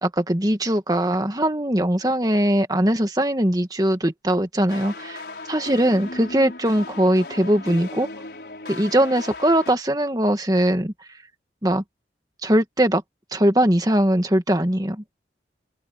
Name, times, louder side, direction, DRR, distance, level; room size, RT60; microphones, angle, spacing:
voice 1, 0.0-5.2 5.5-8.1 8.7-10.9 11.6-11.8 12.4-13.0 13.3-15.0, right 1 dB, 20° right, 2.0 m, -21 dB
sound 1, 4.7-9.7, left 2 dB, 65° left, 4.9 m, -36 dB
head